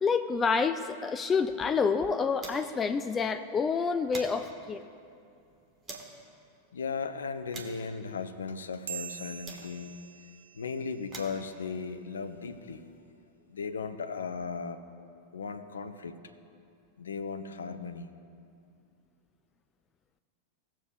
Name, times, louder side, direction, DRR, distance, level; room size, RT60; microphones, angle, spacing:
voice 1, 0.0-4.8, left 5 dB, 20° left, 11 dB, 0.3 m, -28 dB
sound 1, 1.1-2.9 3.2-3.3 3.7-6.2 6.8-10.1 10.8-13.0, right 3 dB, 25° right, 1.4 m, -49 dB
voice 2, 6.7-10.0 10.5-12.9 13.5-14.8 15.3-16.1 17.0-18.1, left 5 dB, 70° left, 10 dB, 0.5 m, -36 dB
sound 2, 8.9-11.7, right 10 dB, 65° right, 0.4 m, -45 dB
18.0 x 7.3 x 2.3 m, 2.5 s
figure-of-eight pair, 90°, 0 cm